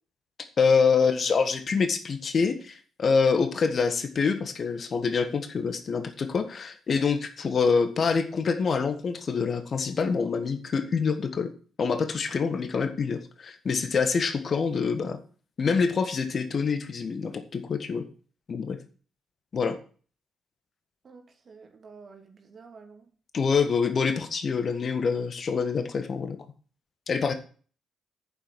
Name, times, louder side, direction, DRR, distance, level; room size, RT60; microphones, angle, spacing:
voice 1, 0.6-11.5 11.8-15.2 15.6-18.0 18.5-18.8 19.5-19.8 23.3-26.4 27.1-27.3, left 5 dB, 45° left, 9 dB, 1.6 m, -26 dB
voice 2, 21.0-23.1, right 4 dB, 45° right, 4 dB, 2.7 m, -50 dB
8.9 x 7.3 x 6.3 m, 0.40 s
figure-of-eight pair, 40°, 0 cm